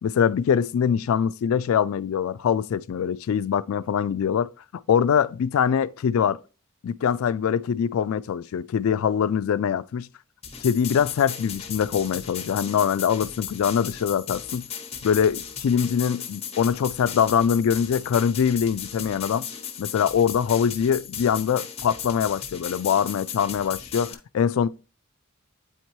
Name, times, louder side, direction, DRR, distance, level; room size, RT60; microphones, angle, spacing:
voice 1, 0.0-4.5 4.9-6.4 6.8-10.1 10.6-14.7 15.0-19.5 19.8-24.7, left 7 dB, 75° left, 0.3 m, -23 dB
sound 1, 10.4-24.1, left 8 dB, 30° left, 0.9 m, -36 dB
8.5 x 4.5 x 2.7 m
head